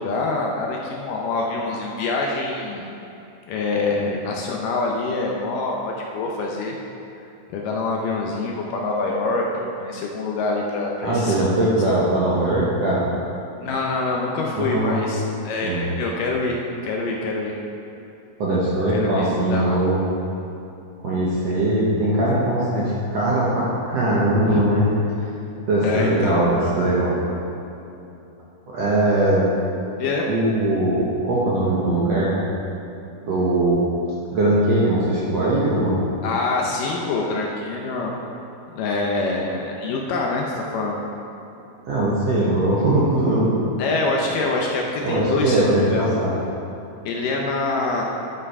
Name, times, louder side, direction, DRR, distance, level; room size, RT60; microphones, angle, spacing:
voice 1, 0.0-2.9 3.5-6.8 7.5-11.8 13.6-17.6 18.9-19.8 24.4-24.7 25.8-26.4 30.0-30.3 36.2-38.2 38.7-41.0 43.8-46.1 47.1-48.0, left 3 dB, 75° left, -1 dB, 2.2 m, -25 dB
voice 2, 11.0-13.0 14.5-15.0 15.6-16.0 18.4-20.0 21.0-24.9 25.7-27.1 28.7-29.5 30.3-32.4 33.2-33.9 34.3-36.0 41.9-43.5 45.0-46.3, right 1 dB, 60° right, -7 dB, 1.8 m, -20 dB
12.0 x 5.7 x 4.7 m, 2.9 s
omnidirectional pair, 4.3 m